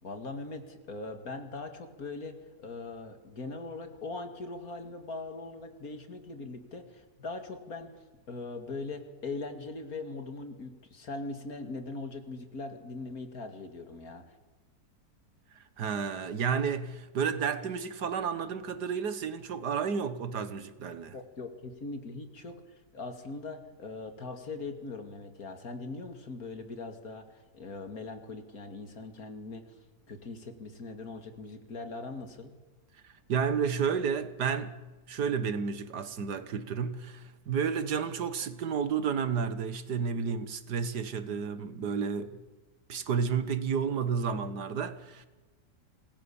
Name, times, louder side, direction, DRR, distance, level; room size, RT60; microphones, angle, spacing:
voice 1, 0.0-14.4 21.1-29.8 30.1-32.5, left 3 dB, 55° left, 2.6 m, -41 dB
voice 2, 15.5-21.2 33.3-34.8 35.1-42.4 42.9-45.3, right 6 dB, 70° right, 2.0 m, -31 dB
26.0 x 19.0 x 7.2 m
omnidirectional pair, 1.8 m